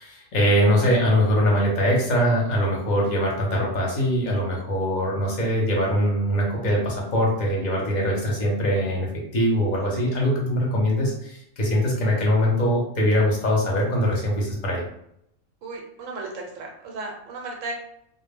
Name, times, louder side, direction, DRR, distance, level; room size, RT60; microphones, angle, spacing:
voice 1, 0.0-9.1 9.3-14.8, equal, 45° left, -2 dB, 0.7 m, -22 dB
voice 2, 15.6-17.7, right 3 dB, 80° right, 0 dB, 0.9 m, -35 dB
2.1 x 2.0 x 3.3 m, 0.74 s
omnidirectional pair, 1.3 m